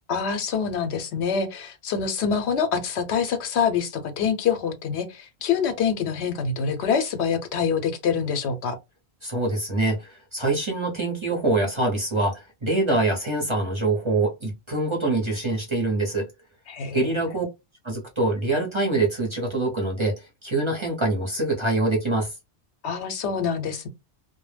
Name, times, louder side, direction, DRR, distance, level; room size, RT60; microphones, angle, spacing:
voice 1, 0.1-8.8 16.7-17.3 22.8-23.9, left 6 dB, 75° left, 0.8 m, -26 dB
voice 2, 9.2-16.3 16.9-17.4 17.8-22.3, right 2 dB, 30° right, 0.6 m, -25 dB
2.1 x 2.0 x 3.2 m
omnidirectional pair, 1.1 m